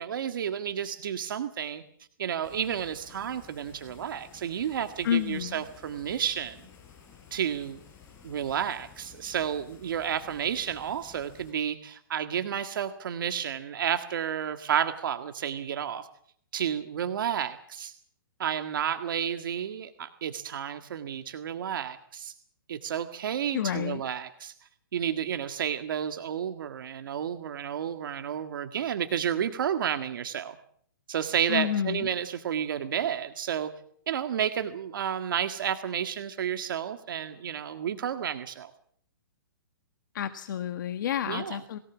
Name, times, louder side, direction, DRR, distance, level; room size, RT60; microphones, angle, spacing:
voice 1, 0.0-1.8 2.2-6.6 7.3-7.8 8.2-16.1 16.5-17.9 18.4-22.3 22.7-24.5 24.9-30.6 31.1-33.7 34.1-38.7 41.3-41.6, right 9 dB, 65° right, 8 dB, 1.8 m, -31 dB
sound 1, 2.4-11.5, left 7 dB, 20° left, 5.3 m, -53 dB
voice 2, 5.0-5.6 23.5-24.0 31.5-32.1 40.1-41.8, left 10 dB, 60° left, 9 dB, 1.5 m, -29 dB
23.0 x 17.5 x 7.3 m, 0.63 s
hypercardioid pair, 150°, 12 cm